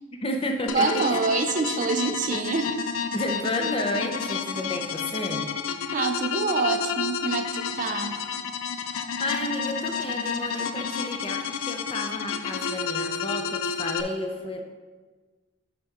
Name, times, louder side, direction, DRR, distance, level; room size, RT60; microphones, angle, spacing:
voice 1, 0.2-1.2 3.1-5.5 8.8-14.6, left 1 dB, 25° left, 3 dB, 0.6 m, -31 dB
sound 1, 0.7-14.0, left 6 dB, 80° left, 0.4 m, -30 dB
voice 2, 0.7-2.7 3.6-3.8 5.9-8.2, right 4 dB, 35° right, 7 dB, 0.4 m, -26 dB
6.8 x 5.8 x 3.7 m, 1.4 s
head